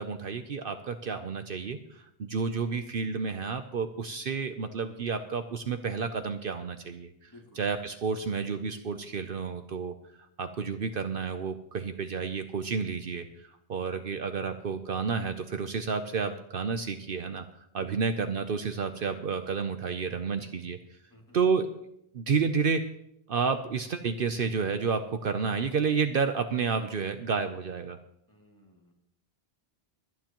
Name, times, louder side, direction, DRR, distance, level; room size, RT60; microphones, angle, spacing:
voice 1, 0.0-7.3 7.6-9.9 10.4-13.3 13.7-20.8 21.3-21.7 22.1-22.8 23.3-28.0, right 5 dB, 60° right, 8 dB, 0.9 m, -30 dB
voice 2, 7.3-7.6 17.8-18.0 21.1-21.4 28.3-28.9, left 1 dB, 20° left, -1 dB, 2.5 m, -56 dB
24.5 x 9.5 x 3.0 m, 0.75 s
omnidirectional pair, 1.1 m